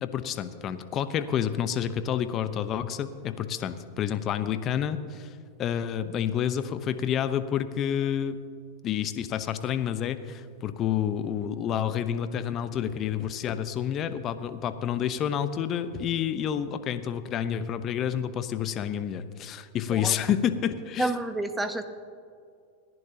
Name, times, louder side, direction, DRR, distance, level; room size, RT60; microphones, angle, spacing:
voice 1, 0.0-8.4 8.8-21.1, left 9 dB, 40° left, 11 dB, 0.9 m, -29 dB
voice 2, 21.0-21.8, right 2 dB, 10° right, 9 dB, 1.1 m, -29 dB
29.0 x 11.0 x 2.9 m, 2.3 s
hypercardioid pair, 100°, 0 cm